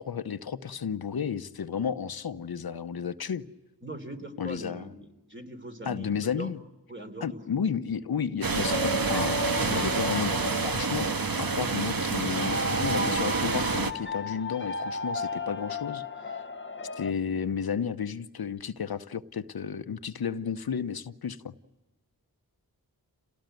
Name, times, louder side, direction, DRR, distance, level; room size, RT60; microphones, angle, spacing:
voice 1, 0.0-3.5 4.4-4.9 5.9-6.6 7.2-9.4 9.7-16.4 17.0-21.5, left 7 dB, 75° left, 11 dB, 0.9 m, -32 dB
voice 2, 3.8-6.5 6.9-7.5, right 1 dB, 30° right, 5 dB, 3.5 m, -41 dB
sound 1, 8.4-13.9, right 4 dB, 65° right, 1.4 m, -28 dB
sound 2, 8.6-17.1, left 2 dB, 30° left, 0.8 m, -34 dB
28.0 x 18.5 x 9.2 m, 1.1 s
wide cardioid pair, 60°, 37 cm